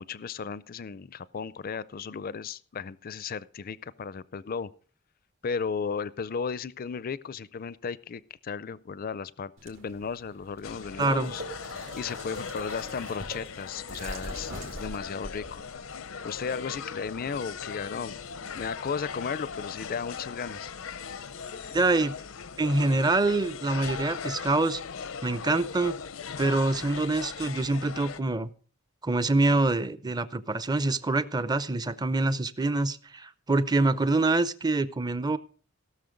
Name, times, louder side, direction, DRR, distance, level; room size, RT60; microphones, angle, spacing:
voice 1, 0.0-4.7 5.4-11.4 11.9-15.6 16.2-18.2 18.5-20.7, left 6 dB, 45° left, 19 dB, 0.5 m, -35 dB
sound 1, 9.6-15.7, right 1 dB, 70° right, 2.5 m, -43 dB
sound 2, 10.6-28.2, left 6 dB, 85° left, 0.7 m, -39 dB
voice 2, 11.0-11.3 21.7-22.2 22.6-24.8 25.2-26.0 26.4-28.5 29.0-35.4, right 2 dB, 20° right, 15 dB, 0.6 m, -25 dB
17.0 x 6.4 x 5.1 m, 0.43 s
head